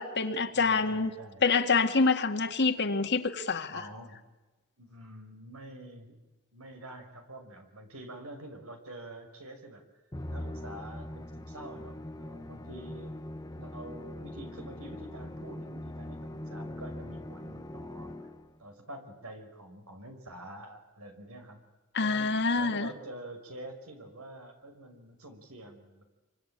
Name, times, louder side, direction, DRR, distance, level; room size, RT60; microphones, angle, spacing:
voice 1, 0.0-1.1 1.4-3.8 21.9-22.9, left 4 dB, 50° left, 6 dB, 1.9 m, -26 dB
voice 2, 0.5-1.5 3.7-4.3 4.8-6.2 6.5-9.8 10.3-13.3 13.5-18.3 18.6-21.6 22.0-26.1, right 1 dB, 70° right, 6 dB, 5.5 m, -47 dB
Musical instrument, 10.1-18.6, left 1 dB, 15° left, 1.1 m, -41 dB
26.5 x 24.5 x 8.9 m, 1.2 s
head